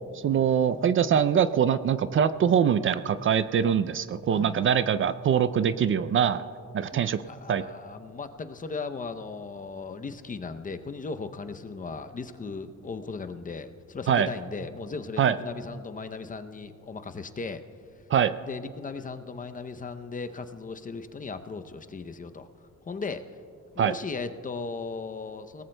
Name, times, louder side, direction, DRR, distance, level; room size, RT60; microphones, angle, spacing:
voice 1, 0.1-6.4 6.7-7.2 7.5-7.6 14.1-14.3 15.2-15.4 18.1-18.3 23.8-23.9, right 8 dB, 45° right, 13 dB, 0.4 m, -23 dB
voice 2, 4.3-4.6 6.9-17.6 18.4-22.5 22.9-23.2 23.7-25.6, left 4 dB, 25° left, 9 dB, 0.6 m, -37 dB
22.5 x 18.5 x 2.2 m, 2.5 s
cardioid pair, 120°, 30 cm